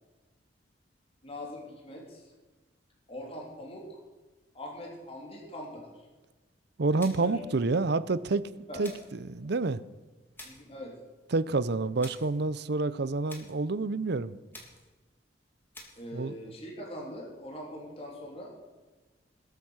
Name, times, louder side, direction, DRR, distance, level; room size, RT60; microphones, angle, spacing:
voice 1, 1.2-2.3 3.1-4.0 4.5-6.1 7.2-7.3 8.7-8.8 9.4-9.5 10.4-11.0 15.9-18.5, left 1 dB, 35° left, -1 dB, 3.4 m, -42 dB
voice 2, 6.8-8.5 8.8-9.8 11.3-14.4 16.1-16.3, right 3 dB, 65° right, 16 dB, 0.7 m, -28 dB
sound 1, 7.0-7.4 8.8-9.2 10.4-10.7 12.0-12.4 13.3-13.7 14.5-15.0 15.7-16.1, left 1 dB, 10° left, 3.0 m, -49 dB
21.0 x 8.4 x 6.4 m, 1.2 s
head